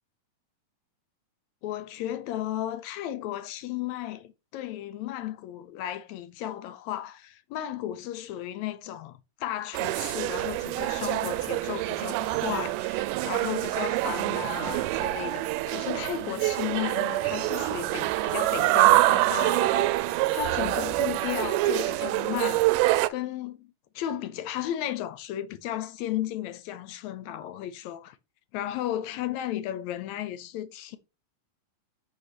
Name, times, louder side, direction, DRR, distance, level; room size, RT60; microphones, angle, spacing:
voice 1, 1.6-28.2 28.5-31.0, left 12 dB, 75° left, 1.7 m, -34 dB
sound 1, 9.7-23.1, right 17 dB, 85° right, 2.1 m, -26 dB
6.7 x 5.1 x 5.9 m
omnidirectional pair, 3.7 m